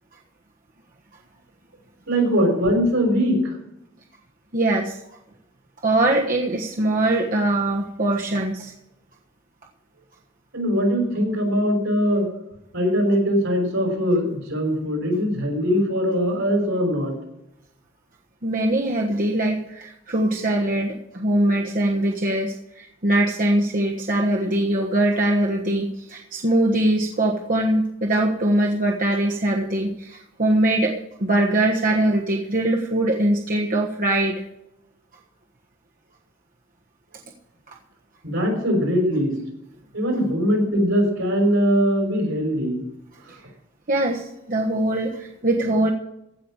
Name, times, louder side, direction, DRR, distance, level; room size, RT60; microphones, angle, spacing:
voice 1, 2.1-3.6 10.5-12.3 12.7-17.1 38.2-39.3 39.9-42.8, equal, 75° right, 1 dB, 5.8 m, -21 dB
voice 2, 4.5-5.0 5.8-8.7 18.4-34.4 37.7-37.8 43.9-45.9, right 1 dB, 45° right, 0 dB, 1.3 m, -22 dB
16.0 x 6.0 x 8.6 m, 0.86 s
head